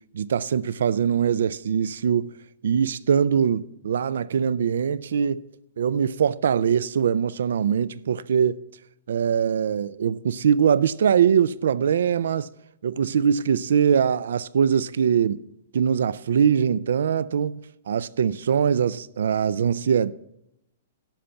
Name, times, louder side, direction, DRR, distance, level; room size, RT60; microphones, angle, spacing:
voice 1, 0.1-2.3 2.6-5.4 5.8-8.6 9.1-12.5 12.8-15.4 15.7-20.1, right 7 dB, 80° right, 0.4 m, -22 dB
11.5 x 5.7 x 7.0 m
hypercardioid pair, 165°, 0 cm